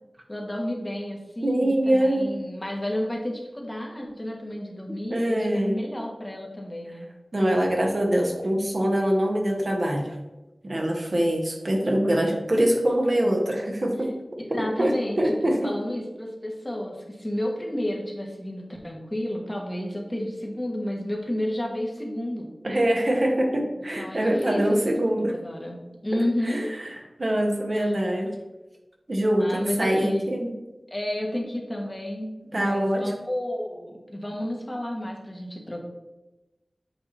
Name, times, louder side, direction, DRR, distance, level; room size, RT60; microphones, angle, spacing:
voice 1, 0.3-7.1 14.5-15.4 15.6-22.5 24.0-26.7 27.7-27.9 29.4-30.4 30.9-35.8, left 1 dB, 25° left, 0 dB, 1.2 m, -31 dB
voice 2, 1.4-2.4 5.1-5.8 7.3-10.1 10.6-14.1 14.5-15.7 22.6-25.3 26.4-28.3 29.1-30.5 32.5-33.1, right 1 dB, 55° right, 1 dB, 1.2 m, -24 dB
8.1 x 2.8 x 4.2 m, 1.0 s
wide cardioid pair, 55°, 0 cm